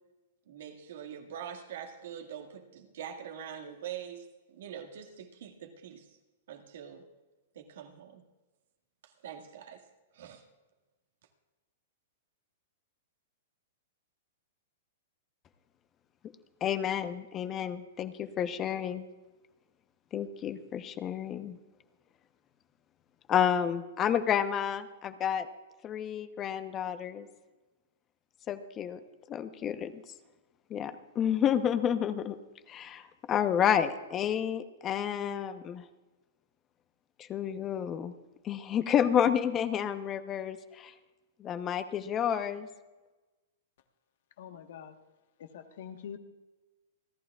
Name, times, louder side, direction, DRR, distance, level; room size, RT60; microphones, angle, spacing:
voice 1, 0.5-6.2 6.5-7.1 7.5-8.2 9.0-9.9 10.1-10.4, right 8 dB, 70° right, 4 dB, 1.9 m, -44 dB
voice 2, 16.6-19.1 20.1-21.6 23.3-25.5 25.8-27.3 28.5-29.0 29.3-30.0 30.7-32.4 32.7-35.8 37.2-38.1 38.4-40.9 41.4-42.7, left 9 dB, 25° left, 10 dB, 0.9 m, -30 dB
voice 3, 44.4-44.9 45.5-46.2, left 8 dB, 65° left, 7 dB, 1.3 m, -44 dB
29.0 x 11.0 x 2.4 m, 1.2 s
hypercardioid pair, 130°, 0 cm